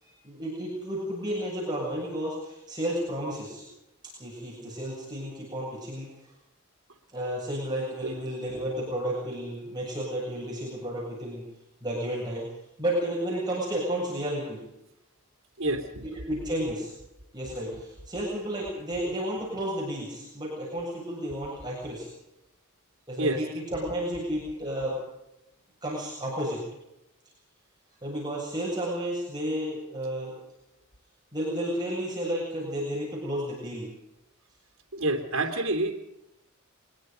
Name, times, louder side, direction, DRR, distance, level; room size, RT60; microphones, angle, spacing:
voice 1, 0.0-3.6 4.2-6.1 7.1-11.4 11.8-12.5 12.8-14.6 16.0-16.9 17.3-22.1 23.1-25.0 25.8-26.6 28.0-30.3 31.3-33.9, equal, 20° right, -4 dB, 7.6 m, -32 dB
voice 2, 15.6-16.0 23.2-23.4 34.9-35.9, right 2 dB, 75° right, 4 dB, 3.2 m, -27 dB
24.0 x 22.0 x 5.3 m, 0.88 s
head